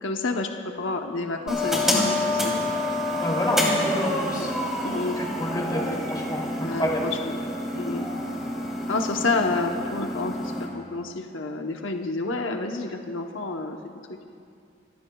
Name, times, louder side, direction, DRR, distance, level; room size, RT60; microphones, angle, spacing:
voice 1, 0.0-0.5 0.8-2.6 4.3-4.5 4.8-5.2 6.6-7.3 7.7-8.1 8.9-13.8 14.1-14.2, left 3 dB, 85° left, 3 dB, 0.9 m, -29 dB
sound 1, 1.5-10.6, left 1 dB, 5° right, 3.1 m, -28 dB
voice 2, 3.2-4.5 5.1-7.0, left 1 dB, 20° left, -3 dB, 2.8 m, -29 dB
29.0 x 15.5 x 2.3 m, 2.4 s
head